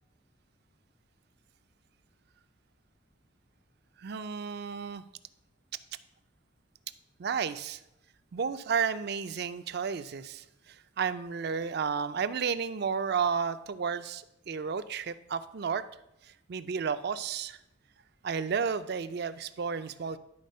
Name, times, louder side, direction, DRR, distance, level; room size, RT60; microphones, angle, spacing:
voice 1, 4.0-5.0 7.2-7.8 8.3-10.4 11.0-15.8 16.5-17.6 18.2-20.2, right 6 dB, 55° right, 12 dB, 0.4 m, -32 dB
11.0 x 4.1 x 5.4 m, 0.83 s
head